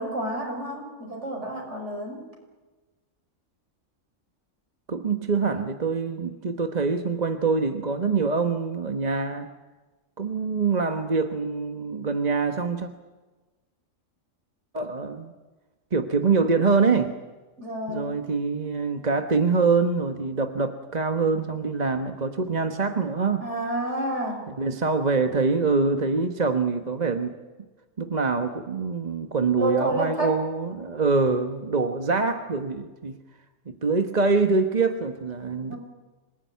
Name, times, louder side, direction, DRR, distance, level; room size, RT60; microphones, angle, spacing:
voice 1, 0.0-2.3 17.6-18.2 23.4-24.4 29.6-30.4 35.7-35.8, right 1 dB, 60° right, 1 dB, 6.0 m, -29 dB
voice 2, 4.9-9.5 10.2-12.9 14.7-15.3 15.9-17.1 17.9-23.5 24.6-27.4 28.0-33.2 33.7-35.7, right 4 dB, 35° right, 6 dB, 1.2 m, -25 dB
26.5 x 18.5 x 9.5 m, 1.2 s
omnidirectional pair, 1.3 m